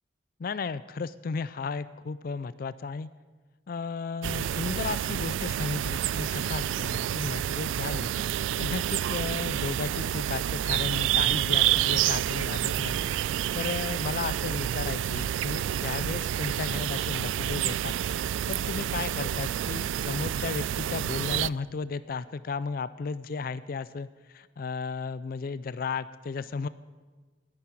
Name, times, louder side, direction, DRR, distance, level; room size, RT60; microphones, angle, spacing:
voice 1, 0.4-3.1 3.7-8.1 8.6-13.0 13.5-17.9 18.5-26.7, left 4 dB, 50° left, 16 dB, 0.4 m, -34 dB
sound 1, 4.2-21.5, right 11 dB, 85° right, 0.3 m, -29 dB
10.5 x 9.6 x 9.8 m, 1.4 s
head